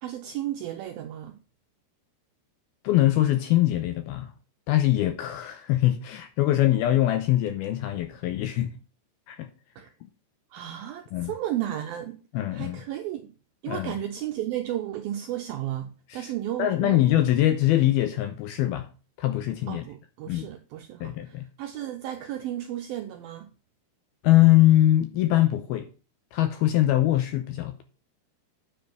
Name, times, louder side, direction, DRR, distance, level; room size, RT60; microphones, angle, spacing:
voice 1, 0.0-1.4 9.8-9.9 10.5-12.2 12.5-13.3 13.6-17.2 19.7-23.5, right 12 dB, 80° right, 2.1 m, -33 dB
voice 2, 2.8-4.3 4.7-8.7 9.3-9.5 11.1-11.3 12.3-12.8 13.7-13.9 16.1-16.3 16.6-18.9 19.2-19.8 20.3-20.5 21.0-21.5 24.2-25.9 26.3-27.8, left 14 dB, 80° left, 2.3 m, -23 dB
9.6 x 5.3 x 5.9 m
omnidirectional pair, 5.1 m